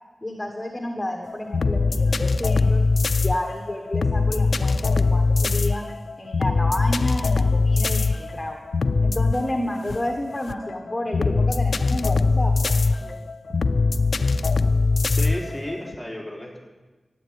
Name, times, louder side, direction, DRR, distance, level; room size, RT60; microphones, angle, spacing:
voice 1, 0.2-2.8 3.2-5.8 6.2-8.6 9.0-13.2, left 1 dB, 15° left, 2 dB, 1.5 m, -30 dB
sound 1, 1.3-16.0, left 3 dB, 70° left, 0.4 m, -22 dB
Thump thud, 8.3-8.7 10.0-10.4 11.8-12.1 13.5-14.0, right 2 dB, 45° right, 1.3 m, -47 dB
voice 2, 15.1-16.6, left 1 dB, 5° right, -2 dB, 3.7 m, -33 dB
13.5 x 8.6 x 9.6 m, 1.2 s
wide cardioid pair, 90°, 0 cm